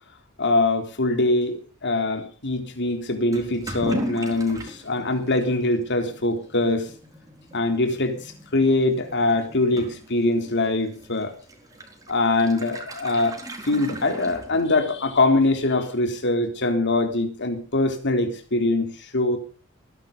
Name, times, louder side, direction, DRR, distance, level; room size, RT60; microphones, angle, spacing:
voice 1, 0.4-6.9 7.5-11.3 12.1-13.4 13.7-19.4, left 2 dB, 55° left, 3.8 m, -23 dB
Toilet flush / Liquid, 3.3-15.0, right 1 dB, 15° right, 4.2 m, -38 dB
21.0 x 11.0 x 5.4 m
head